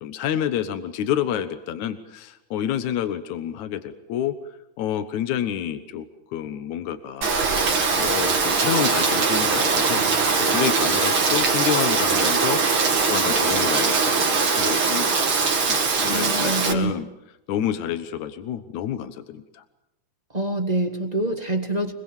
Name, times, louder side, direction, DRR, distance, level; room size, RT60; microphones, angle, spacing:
voice 1, 0.0-4.3 4.8-6.1 6.3-7.4 7.9-15.2 15.7-17.1 17.5-19.6, left 10 dB, 80° left, 11 dB, 2.6 m, -28 dB
Rain, 7.2-16.7, right 4 dB, 45° right, 3.1 m, -21 dB
voice 2, 16.1-17.0 20.3-21.9, right 2 dB, 20° right, 5 dB, 1.2 m, -25 dB
25.0 x 22.5 x 7.4 m, 0.90 s
omnidirectional pair, 3.3 m